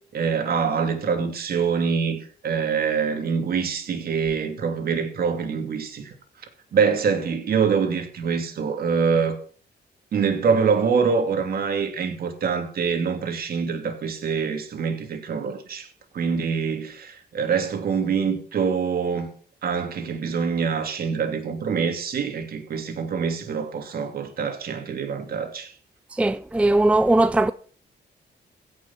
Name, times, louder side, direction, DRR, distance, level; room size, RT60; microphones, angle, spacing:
voice 1, 0.1-6.1 6.7-9.3 10.1-15.9 16.1-19.3 19.6-25.7, right 6 dB, 60° right, 2.8 m, -25 dB
voice 2, 26.2-27.5, right 2 dB, 5° right, 0.4 m, -19 dB
16.0 x 6.2 x 6.1 m
wide cardioid pair, 145°, 17 cm